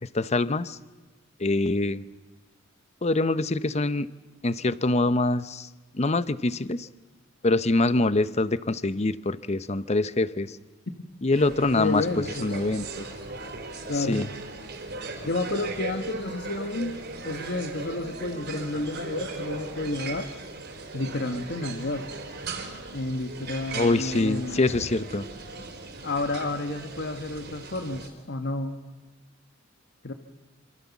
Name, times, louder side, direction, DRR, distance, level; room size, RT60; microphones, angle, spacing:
voice 1, 0.0-0.8 1.4-2.0 3.0-4.1 4.4-5.7 5.9-6.9 7.4-10.6 11.2-13.1 14.1-14.3 14.9-15.0 23.7-25.3, left 2 dB, 35° left, 15 dB, 0.8 m, -25 dB
Food Hall, 11.3-28.1, right 3 dB, 55° right, 4.3 m, -38 dB
voice 2, 11.7-12.6 13.9-14.2 15.2-17.0 17.2-20.3 20.9-22.1 22.9-24.6 26.0-28.8 30.0-30.1, left 2 dB, 55° left, 7 dB, 1.5 m, -30 dB
27.0 x 26.0 x 7.2 m, 1.2 s
head